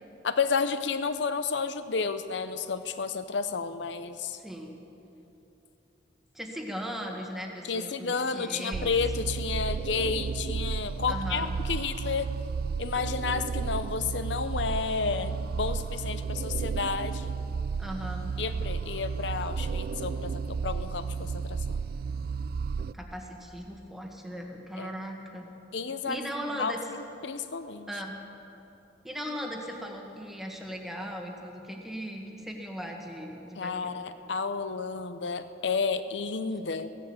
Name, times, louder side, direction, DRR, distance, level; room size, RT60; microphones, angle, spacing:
voice 1, 0.2-4.4 7.6-12.3 12.8-17.4 18.4-21.8 24.8-24.9 25.7-26.2 26.6-27.9 33.6-36.9, left 5 dB, 70° left, 11 dB, 0.7 m, -31 dB
voice 2, 4.4-4.8 6.3-8.9 11.1-11.5 17.8-18.3 22.9-25.4 26.0-26.8 27.9-28.2 29.0-33.9, equal, ahead, 1 dB, 1.4 m, -38 dB
sound 1, 8.7-22.9, right 5 dB, 55° right, 0.3 m, -33 dB
16.0 x 11.0 x 7.8 m, 3.0 s
head